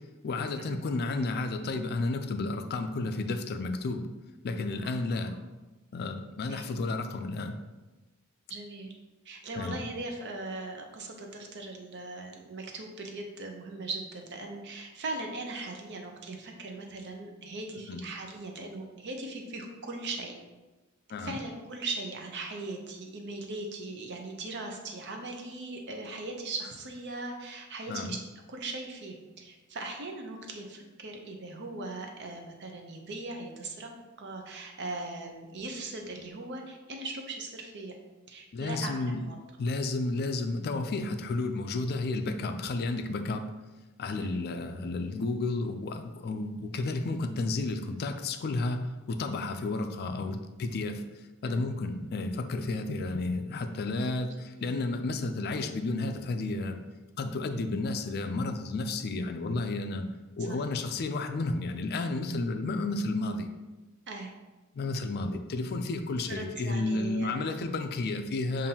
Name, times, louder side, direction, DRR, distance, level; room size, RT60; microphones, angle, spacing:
voice 1, 0.2-4.1 4.4-5.4 5.9-7.5 9.6-9.8 17.9-18.0 21.1-21.4 27.9-28.1 38.5-39.2 39.6-43.5 44.0-51.0 51.4-56.8 57.2-60.1 60.4-63.5 64.7-68.7, left 2 dB, 50° left, 7 dB, 0.4 m, -32 dB
voice 2, 8.5-8.9 9.2-20.3 21.2-28.2 28.5-33.9 34.2-37.9 38.3-39.4 44.2-44.4 51.4-51.7 54.6-54.7 60.4-60.6 64.1-64.3 66.3-67.5 68.6-68.7, right 2 dB, 55° right, 3 dB, 0.7 m, -39 dB
7.1 x 2.6 x 2.8 m, 1.1 s
head